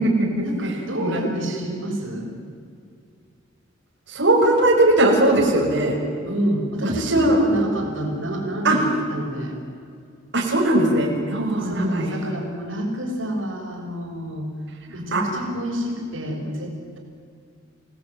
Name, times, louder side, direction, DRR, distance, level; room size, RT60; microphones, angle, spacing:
voice 1, 0.4-2.3 6.2-9.6 10.9-11.2 11.6-14.5 14.9-17.0, equal, 85° right, 0 dB, 6.5 m, -28 dB
voice 2, 1.0-1.3 4.1-6.0 6.8-7.4 8.6-8.8 10.3-12.1 15.1-15.2, right 1 dB, 60° right, -2 dB, 6.2 m, -19 dB
29.5 x 18.0 x 9.6 m, 2.2 s
head